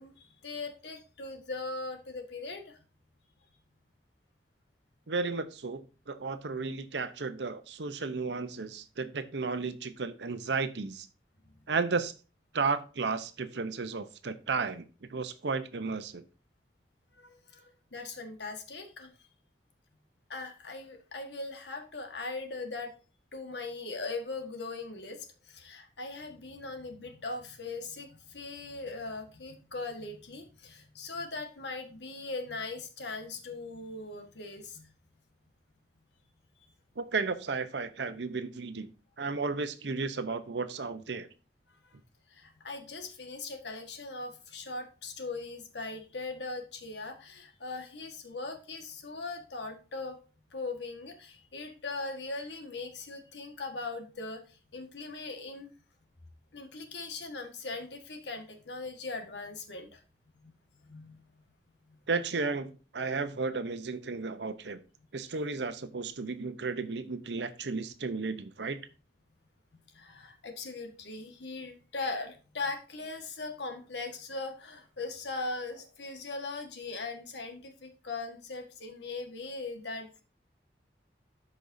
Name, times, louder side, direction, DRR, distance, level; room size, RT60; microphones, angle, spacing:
voice 1, 0.0-2.8 17.1-19.1 20.3-22.9 23.3-34.9 36.6-36.7 41.8-42.0 42.3-50.2 50.5-55.7 56.5-60.0 60.4-60.5 60.8-61.3 69.9-80.2, left 3 dB, 85° left, 5 dB, 1.5 m, -40 dB
voice 2, 5.1-11.1 11.7-12.1 12.5-14.8 15.1-16.2 37.0-38.9 39.2-41.3 62.1-64.8 65.1-68.8, right 4 dB, 85° right, 11 dB, 0.8 m, -33 dB
13.0 x 5.3 x 2.7 m, 0.34 s
head